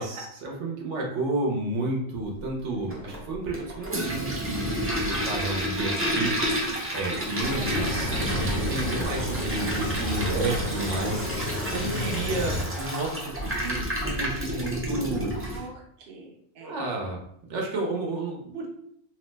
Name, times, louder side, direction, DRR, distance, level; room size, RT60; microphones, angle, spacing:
voice 1, 0.0-6.3 6.9-15.6 16.6-17.2 17.5-18.7, right 2 dB, 85° right, -1 dB, 1.0 m, -31 dB
Toilet flush, 2.9-15.6, right 1 dB, 20° right, 0.3 m, -31 dB
sound 1, 7.4-12.6, left 1 dB, 50° left, 0.5 m, -31 dB
voice 2, 7.5-8.0 15.5-16.8, right 2 dB, 55° right, -1 dB, 0.8 m, -44 dB
2.8 x 2.0 x 3.2 m, 0.69 s
omnidirectional pair, 1.2 m